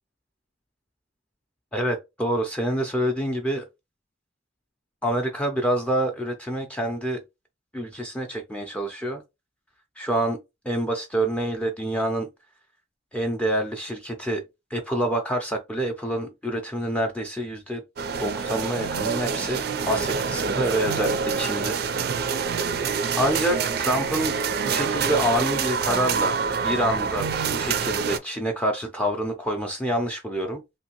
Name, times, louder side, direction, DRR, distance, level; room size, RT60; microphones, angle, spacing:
voice 1, 1.7-3.7 5.0-7.2 7.7-9.2 10.0-10.4 10.6-12.3 13.1-14.4 14.7-17.8 18.2-21.8 23.2-24.3 24.6-30.6, right 1 dB, 5° left, 0.4 m, -27 dB
sound 1, 18.0-28.2, right 5 dB, 55° right, 0.4 m, -26 dB
2.8 x 2.7 x 2.9 m
head